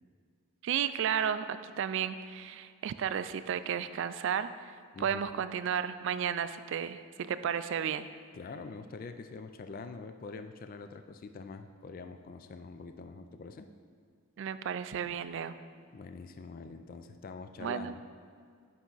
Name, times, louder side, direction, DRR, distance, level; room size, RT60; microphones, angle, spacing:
voice 1, 0.6-4.7 5.0-8.1 14.4-15.6 17.6-17.9, right 8 dB, 60° right, 12 dB, 0.3 m, -33 dB
voice 2, 4.9-5.4 8.3-13.7 15.9-18.0, left 4 dB, 40° left, 8 dB, 0.3 m, -45 dB
8.6 x 5.5 x 3.9 m, 2.1 s
head